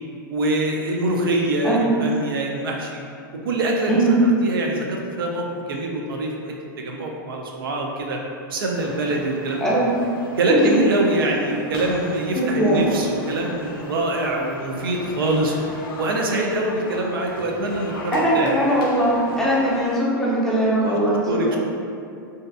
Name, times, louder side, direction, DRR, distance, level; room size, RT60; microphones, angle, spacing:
voice 1, 0.3-3.0 3.4-4.1 4.4-8.2 8.5-9.6 10.3-15.5 16.0-18.5 20.9-21.0 21.3-21.6, right 2 dB, 85° right, 0 dB, 0.4 m, -24 dB
voice 2, 3.9-4.2 9.6-10.0 10.5-10.8 12.3-13.0 18.1-21.6, right 1 dB, 5° left, -7 dB, 0.6 m, -20 dB
sound 1, 8.7-20.0, left 1 dB, 75° left, 0.4 m, -37 dB
2.5 x 2.3 x 2.3 m, 2.4 s
hypercardioid pair, 120°, 12 cm